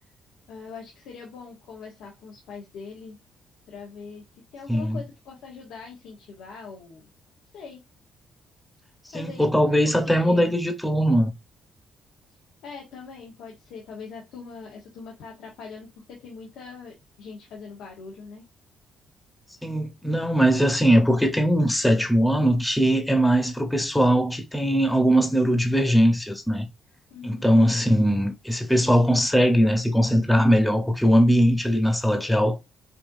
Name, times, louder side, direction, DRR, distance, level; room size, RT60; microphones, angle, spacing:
voice 1, 0.5-3.2 3.7-4.2 4.5-7.1 7.5-7.8 9.1-9.4 9.8-10.6 12.6-18.4 27.1-28.1, left 5 dB, 85° left, 1.2 m, -42 dB
voice 2, 4.7-5.0 9.1-11.3 19.6-26.7 27.2-32.6, equal, 5° left, 1.1 m, -20 dB
5.2 x 2.8 x 2.7 m
cardioid pair, 90°, 0 cm